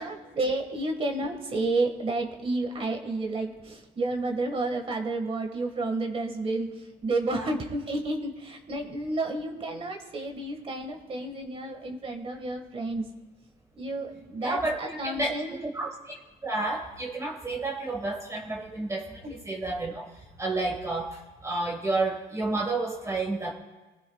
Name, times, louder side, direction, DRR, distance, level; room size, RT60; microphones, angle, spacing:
voice 1, 0.0-13.1 13.8-15.7 19.2-19.4, right 2 dB, 35° right, 2 dB, 1.9 m, -31 dB
voice 2, 14.4-15.3 15.6-16.1 16.4-23.5, right 2 dB, 20° right, 0 dB, 1.6 m, -31 dB
20.5 x 16.0 x 2.4 m, 1.2 s
cardioid pair, 110°, 17 cm